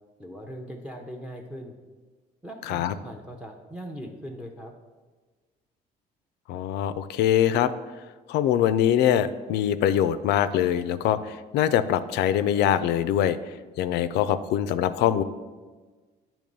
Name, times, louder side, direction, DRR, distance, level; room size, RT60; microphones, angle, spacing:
voice 1, 0.2-1.8 2.4-4.8, equal, 5° right, 2 dB, 0.6 m, -40 dB
voice 2, 6.5-7.7 8.3-13.4 13.8-15.2, left 10 dB, 80° left, 13 dB, 0.4 m, -23 dB
8.6 x 3.0 x 5.3 m, 1.3 s
cardioid pair, 110°, 17 cm